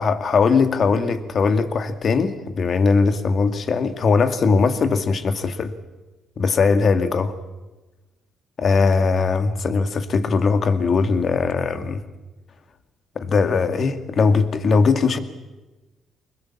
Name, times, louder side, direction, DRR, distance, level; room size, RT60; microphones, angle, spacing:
voice 1, 0.0-5.7 6.4-7.3 8.6-12.0 13.2-15.2, left 4 dB, 50° left, 2.2 m, -20 dB
25.0 x 21.0 x 8.6 m
cardioid pair, 90°, 0 cm